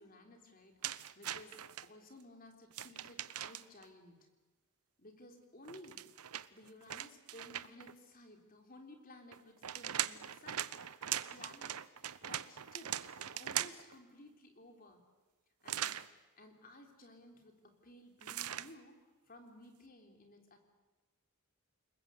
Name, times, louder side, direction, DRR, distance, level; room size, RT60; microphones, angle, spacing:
voice 1, 0.0-4.3 5.0-6.0 6.5-15.0 15.6-16.0 16.4-19.0 19.3-20.6, left 1 dB, 40° left, 4 dB, 3.7 m, -57 dB
sound 1, 0.8-1.9 2.7-3.8 5.6-7.9 9.3-13.9 15.7-16.1 18.2-18.7, right 11 dB, 85° right, 0.9 m, -40 dB
29.0 x 20.5 x 8.2 m, 1.2 s
head